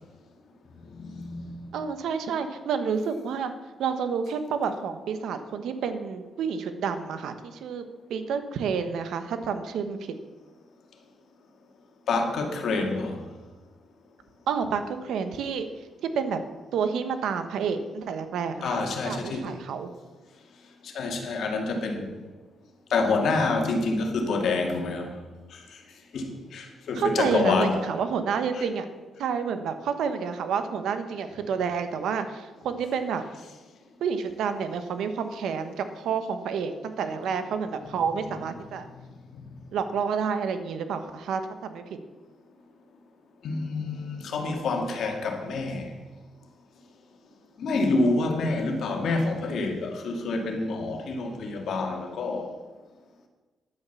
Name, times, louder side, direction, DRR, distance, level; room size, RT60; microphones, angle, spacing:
voice 1, 1.0-1.7 12.1-13.2 18.6-19.5 20.8-22.1 22.9-25.2 25.5-25.6 26.1-27.8 28.5-28.6 43.4-45.9 47.6-52.5, left 3 dB, 65° left, 2.0 m, -27 dB
voice 2, 1.7-3.5 3.8-7.8 8.1-10.1 14.5-15.7 16.0-16.4 16.7-18.8 19.0-19.9 26.9-28.9 29.2-33.2 34.0-38.8 39.7-41.8, right 6 dB, 80° right, 1.2 m, -29 dB
10.5 x 8.6 x 7.1 m
cardioid pair, 140°, 0 cm